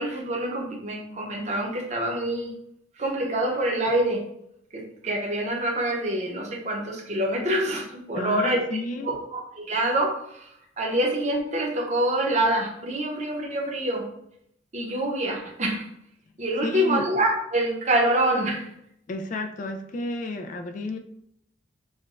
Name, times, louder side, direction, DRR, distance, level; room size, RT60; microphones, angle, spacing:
voice 1, 0.0-2.5 3.0-4.2 4.7-8.6 9.0-10.5 10.8-14.1 14.7-15.9 16.4-18.6, right 1 dB, 40° right, 0 dB, 0.7 m, -26 dB
voice 2, 8.1-9.1 16.6-17.1 19.1-21.0, left 2 dB, 45° left, 6 dB, 0.3 m, -31 dB
6.3 x 2.2 x 2.5 m, 0.74 s
head